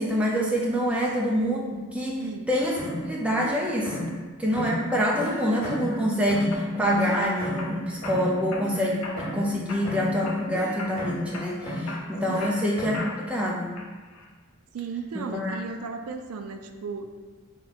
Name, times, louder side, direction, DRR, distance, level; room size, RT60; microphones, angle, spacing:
voice 1, 0.0-4.1 4.4-13.7 15.1-15.6, equal, 5° right, -3 dB, 0.5 m, -26 dB
sound 1, 2.7-4.2 4.5-6.0 6.3-9.6 9.8-11.4 11.6-13.1, left 1 dB, 40° left, 1.5 m, -34 dB
sound 2, 5.6-6.0 6.5-7.7 8.0-8.7 9.0-9.4 9.7-10.5 10.8-11.0 11.3-13.4 13.8-14.3, left 3 dB, 75° left, 0.6 m, -39 dB
voice 2, 14.7-17.2, right 5 dB, 80° right, 6 dB, 0.4 m, -35 dB
4.2 x 2.8 x 4.2 m, 1.3 s
head